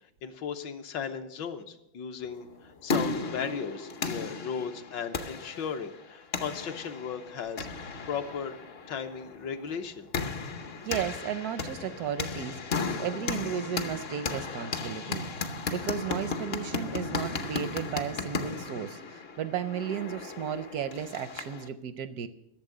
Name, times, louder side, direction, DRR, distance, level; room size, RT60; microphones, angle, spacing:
voice 1, 0.2-2.5 2.8-8.6 8.9-10.1, left 6 dB, 70° left, 6 dB, 1.6 m, -36 dB
sound 1, 2.5-21.7, left 4 dB, 50° left, 0.7 m, -35 dB
voice 2, 10.8-15.2 15.7-22.3, right 8 dB, 70° right, 12 dB, 0.9 m, -34 dB
12.0 x 7.0 x 9.7 m, 0.84 s
omnidirectional pair, 2.1 m